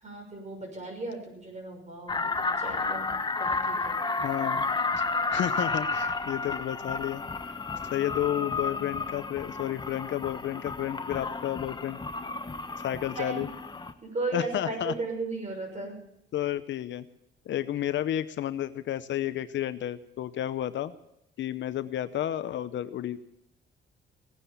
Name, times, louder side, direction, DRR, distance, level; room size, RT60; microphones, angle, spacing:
voice 1, 0.0-3.0 3.4-4.0 5.9-6.1 13.1-13.5 14.0-16.0, right 2 dB, 35° right, 2 dB, 6.2 m, -36 dB
sound 1, 2.1-13.9, left 3 dB, 20° left, 1.1 m, -32 dB
voice 2, 4.2-4.7 5.0-7.2 7.9-12.0 12.8-13.5 14.3-14.9 16.3-17.1 17.5-20.9 21.4-23.2, left 12 dB, 70° left, 13 dB, 0.8 m, -31 dB
17.0 x 9.9 x 7.1 m, 0.79 s
cardioid pair, 90°, 20 cm